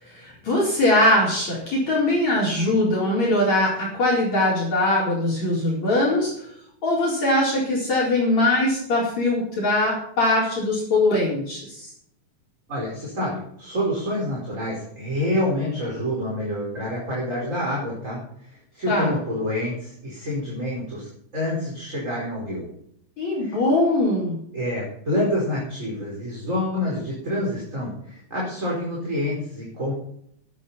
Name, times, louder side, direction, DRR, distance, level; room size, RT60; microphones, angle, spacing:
voice 1, 0.1-6.3 6.8-11.9 18.9-19.1 23.2-24.4, left 1 dB, 40° left, -4 dB, 5.3 m, -21 dB
voice 2, 12.7-22.7 23.4-23.6 24.5-29.9, left 1 dB, 20° right, -4 dB, 5.0 m, -27 dB
17.5 x 11.5 x 4.3 m, 0.70 s
omnidirectional pair, 4.7 m